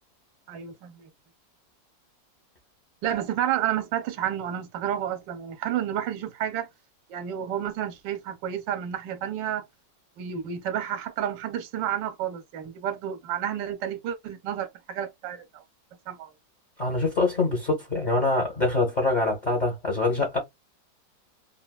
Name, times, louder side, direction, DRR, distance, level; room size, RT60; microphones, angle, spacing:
voice 1, 0.5-1.0 3.0-6.7 7.1-9.6 10.2-15.6 16.1-16.3, right 10 dB, 75° right, 1.2 m, -30 dB
voice 2, 16.8-20.4, left 3 dB, 35° left, 0.7 m, -24 dB
3.5 x 2.1 x 2.2 m
omnidirectional pair, 2.0 m